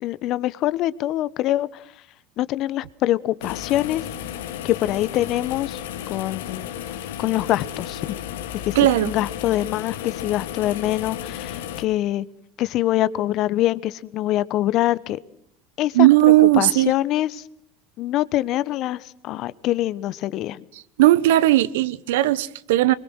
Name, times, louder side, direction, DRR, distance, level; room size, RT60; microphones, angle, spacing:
voice 1, 0.0-1.8 2.4-4.0 4.6-5.8 6.1-6.7 7.2-8.0 8.6-12.2 12.6-15.2 15.8-17.4 18.0-20.6, left 14 dB, 55° left, 18 dB, 1.1 m, -24 dB
sound 1, 3.4-11.8, left 10 dB, 75° left, 2.1 m, -33 dB
voice 2, 8.8-9.1 15.9-16.9 21.0-22.9, right 16 dB, 70° right, 18 dB, 1.1 m, -16 dB
25.5 x 23.5 x 6.4 m, 0.71 s
hypercardioid pair, 70°, 0 cm